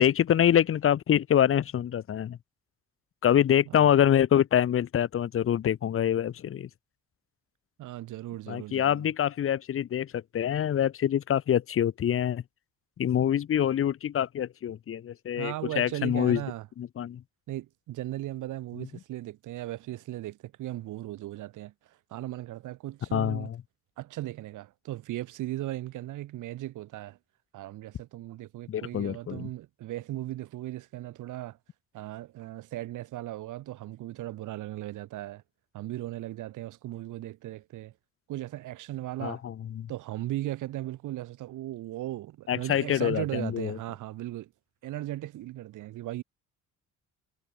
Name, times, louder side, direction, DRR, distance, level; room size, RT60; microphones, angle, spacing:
voice 1, 0.0-2.4 3.2-6.7 8.5-12.4 13.0-16.4 16.8-17.2 23.1-23.6 28.7-29.5 39.2-39.9 42.5-43.8, left 10 dB, 45° left, 0.8 m, -25 dB
voice 2, 7.8-9.1 15.4-16.7 17.5-23.5 24.0-27.2 27.5-31.6 31.9-35.4 35.7-37.9 38.3-39.4 39.9-44.5 44.8-46.2, right 15 dB, 85° right, 2.0 m, -37 dB
cardioid pair, 90°, 30 cm